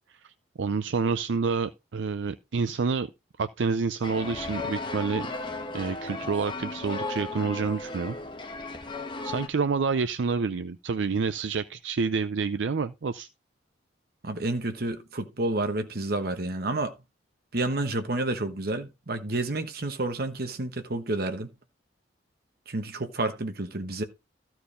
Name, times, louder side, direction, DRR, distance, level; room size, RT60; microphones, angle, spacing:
voice 1, 0.2-3.1 3.4-5.3 5.7-8.2 9.2-13.3, right 5 dB, 90° right, 0.5 m, -28 dB
sound 1, 4.0-9.5, left 2 dB, 25° left, 1.4 m, -35 dB
voice 2, 14.2-16.9 17.5-21.5 22.7-24.0, right 2 dB, 55° right, 1.2 m, -30 dB
13.0 x 4.6 x 5.0 m
head